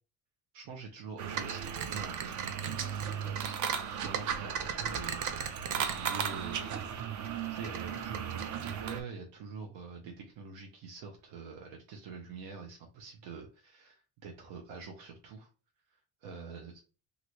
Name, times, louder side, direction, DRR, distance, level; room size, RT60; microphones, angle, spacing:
voice 1, 0.5-2.8 3.2-3.6 3.8-15.5 16.2-16.8, right 5 dB, 80° right, 1 dB, 0.9 m, -46 dB
sound 1, 1.2-9.0, right 8 dB, 45° right, 0.4 m, -35 dB
2.9 x 2.6 x 2.9 m, 0.33 s
cardioid pair, 135°, 46 cm